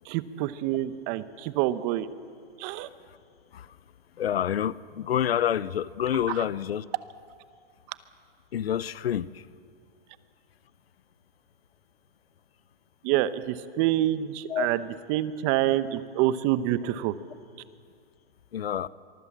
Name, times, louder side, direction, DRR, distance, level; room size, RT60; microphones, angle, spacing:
voice 1, 0.1-2.1 2.6-2.9 13.0-17.1, right 13 dB, 30° right, 14 dB, 0.9 m, -27 dB
voice 2, 4.2-6.9 8.5-9.4 14.5-14.7 18.5-18.9, left 10 dB, 75° left, 18 dB, 0.9 m, -28 dB
24.5 x 23.0 x 7.4 m, 2.1 s
hypercardioid pair, 140°, 30 cm